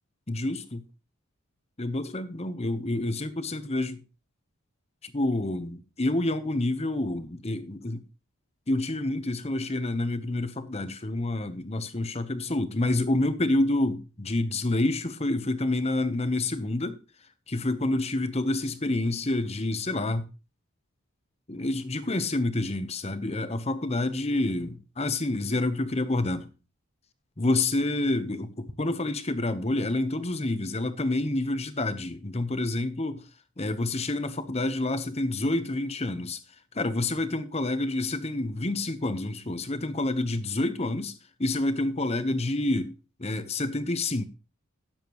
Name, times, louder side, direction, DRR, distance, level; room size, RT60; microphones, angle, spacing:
voice 1, 0.3-0.6 1.8-4.0 5.0-8.0 8.7-17.0 17.5-20.3 21.5-26.5 27.4-33.2 33.6-36.4 36.7-42.9 43.2-44.2, left 2 dB, 30° left, 1.0 m, -28 dB
17.5 x 7.4 x 3.1 m
head